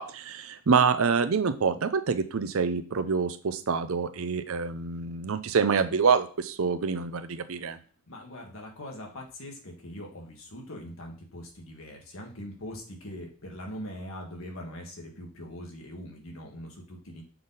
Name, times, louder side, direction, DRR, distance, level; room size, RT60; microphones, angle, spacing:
voice 1, 0.0-7.8, right 5 dB, 65° right, 11 dB, 0.6 m, -26 dB
voice 2, 8.1-17.2, equal, 65° left, 1 dB, 1.6 m, -42 dB
6.8 x 4.0 x 4.0 m, 0.38 s
head